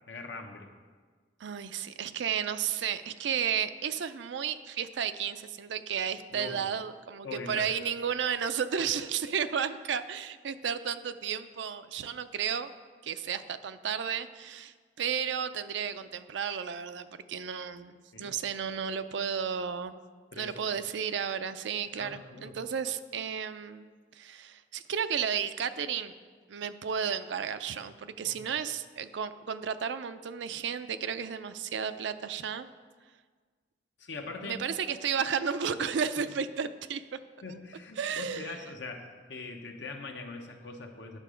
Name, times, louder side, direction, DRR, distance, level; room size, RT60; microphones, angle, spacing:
voice 1, 0.1-0.7 6.3-6.7 7.2-7.7 18.1-18.4 20.3-20.7 21.9-22.6 28.2-28.6 34.0-34.6 37.4-41.2, left 3 dB, 70° left, 3 dB, 1.0 m, -42 dB
voice 2, 1.4-12.7 13.0-20.0 20.3-23.9 24.1-26.1 26.5-32.7 34.4-37.2 38.0-38.6, right 7 dB, 70° right, 12 dB, 0.4 m, -33 dB
9.8 x 6.5 x 5.0 m, 1.5 s
head